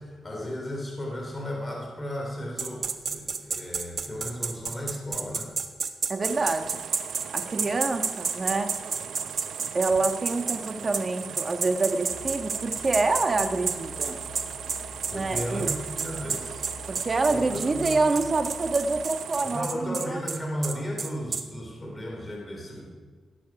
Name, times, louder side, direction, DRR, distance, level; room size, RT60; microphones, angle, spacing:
voice 1, 0.0-5.5 15.1-16.7 17.3-18.0 19.4-22.9, equal, 20° left, -1 dB, 3.6 m, -34 dB
sound 1, 2.6-10.6 10.9-11.1 11.4-21.4, right 5 dB, 55° right, 1.1 m, -30 dB
voice 2, 6.1-6.8 7.3-8.7 9.7-14.2 15.1-15.7 16.9-20.2, right 3 dB, 40° right, 6 dB, 1.3 m, -27 dB
sound 2, 6.2-19.6, right 8 dB, 80° right, 0.5 m, -39 dB
sound 3, 12.1-19.0, left 6 dB, 85° left, 1.2 m, -46 dB
18.0 x 9.3 x 5.9 m, 1.5 s
cardioid pair, 85°, 0 cm